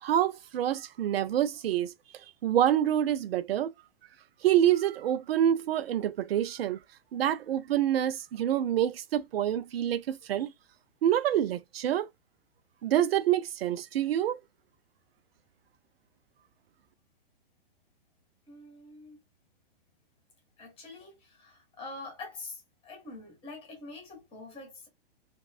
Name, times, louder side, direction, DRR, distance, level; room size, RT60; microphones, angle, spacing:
voice 1, 0.0-3.7 4.4-6.8 7.1-10.5 11.0-12.1 12.8-14.4, right 11 dB, 75° right, 0.4 m, -27 dB
voice 2, 18.5-19.2 20.6-24.9, left 3 dB, 20° left, 1.7 m, -45 dB
3.0 x 2.9 x 2.3 m
hypercardioid pair, 135°, 30 cm